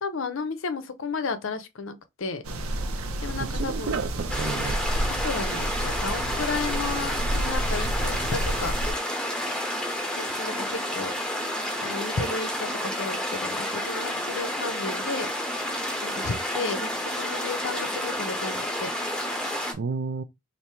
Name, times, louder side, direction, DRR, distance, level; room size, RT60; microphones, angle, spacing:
voice 1, 0.0-2.4 3.2-4.0 5.1-8.7 10.2-11.1 11.8-15.3 16.0-18.9, left 4 dB, 65° left, 0.6 m, -33 dB
sound 1, 2.4-8.9, right 1 dB, 85° right, 0.7 m, -30 dB
voice 2, 3.4-4.8 19.7-20.2, right 4 dB, 55° right, 0.4 m, -31 dB
sound 2, 4.3-19.7, left 1 dB, 5° left, 0.9 m, -30 dB
3.4 x 2.6 x 4.4 m
head